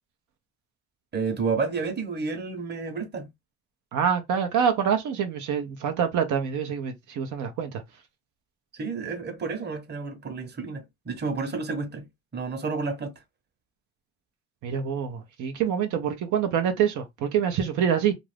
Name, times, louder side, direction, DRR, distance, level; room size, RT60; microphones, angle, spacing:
voice 1, 1.1-3.3 8.7-12.1 12.3-13.1, right 4 dB, 35° right, 0.9 m, -30 dB
voice 2, 3.9-7.8 14.6-18.1, right 8 dB, 85° right, 0.6 m, -26 dB
2.5 x 2.4 x 3.2 m
cardioid pair, 90°, 30 cm